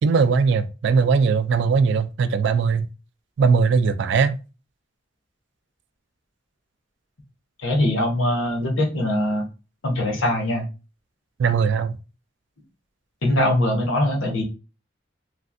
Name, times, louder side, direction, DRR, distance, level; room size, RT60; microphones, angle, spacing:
voice 1, 0.0-2.9 3.4-4.4 11.4-11.9, right 5 dB, 65° right, 0.3 m, -19 dB
voice 2, 7.6-9.4 9.8-10.6 13.2-14.4, left 1 dB, 85° left, 1.1 m, -22 dB
3.2 x 2.5 x 2.5 m
head